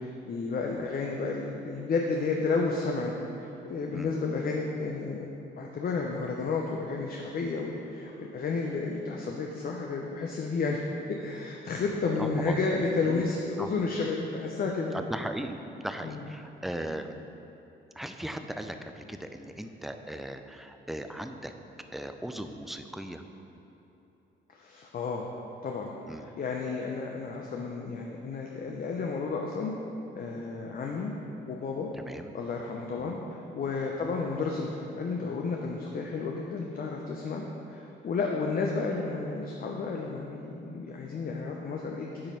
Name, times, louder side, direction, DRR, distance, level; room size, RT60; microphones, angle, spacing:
voice 1, 0.0-3.2 3.7-5.3 5.6-10.8 11.1-15.0 16.0-16.2 24.5-25.3 25.6-29.7 30.1-31.1 31.5-31.9 32.3-37.4 37.7-42.3, left 4 dB, 45° left, 0 dB, 0.6 m, -32 dB
voice 2, 12.2-12.6 13.0-13.2 13.6-13.7 14.9-17.2 18.0-21.5 21.9-23.2 26.1-26.3 31.9-32.3 33.0-33.2 34.0-34.1, right 1 dB, ahead, 7 dB, 0.4 m, -38 dB
8.6 x 3.0 x 5.4 m, 2.9 s
cardioid pair, 90°, 20 cm